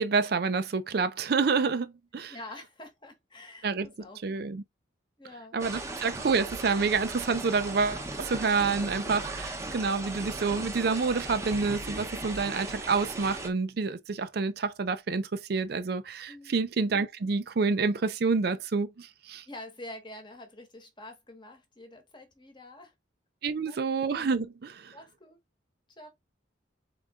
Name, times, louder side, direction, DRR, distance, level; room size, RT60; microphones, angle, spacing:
voice 1, 0.0-2.3 3.6-3.9 4.2-4.6 5.5-19.4 23.4-25.0, right 4 dB, 55° right, 0.4 m, -28 dB
voice 2, 2.3-4.4 5.2-5.8 16.3-16.6 19.4-22.9 23.6-23.8 24.9-25.4 25.9-26.1, left 1 dB, 25° left, 1.1 m, -47 dB
sound 1, 5.6-13.5, right 2 dB, 15° right, 0.7 m, -37 dB
3.8 x 3.7 x 3.5 m
head